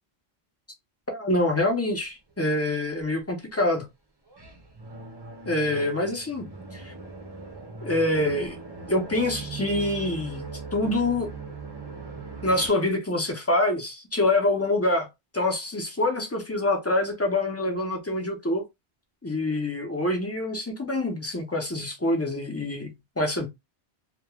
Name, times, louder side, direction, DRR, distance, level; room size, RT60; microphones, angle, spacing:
voice 1, 1.1-3.8 5.5-6.5 6.7-6.9 7.8-8.6 8.9-10.4 10.7-11.3 12.4-15.1 15.3-18.6 19.2-22.9 23.2-23.5, left 2 dB, 25° left, 0.3 m, -25 dB
sound 1, 4.3-12.7, right 4 dB, 30° right, 0.6 m, -40 dB
3.0 x 2.2 x 2.2 m
omnidirectional pair, 1.1 m